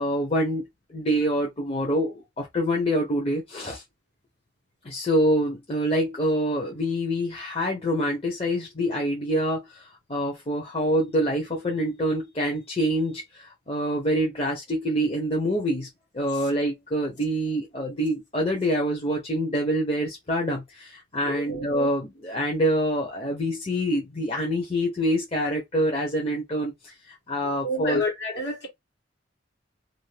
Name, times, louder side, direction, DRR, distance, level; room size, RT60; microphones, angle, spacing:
voice 1, 0.0-3.8 4.8-15.9 16.1-28.0, equal, 35° left, 0.7 m, -26 dB
voice 2, 21.2-21.7 27.6-28.7, left 1 dB, 75° left, 1.3 m, -29 dB
2.6 x 2.5 x 3.2 m
head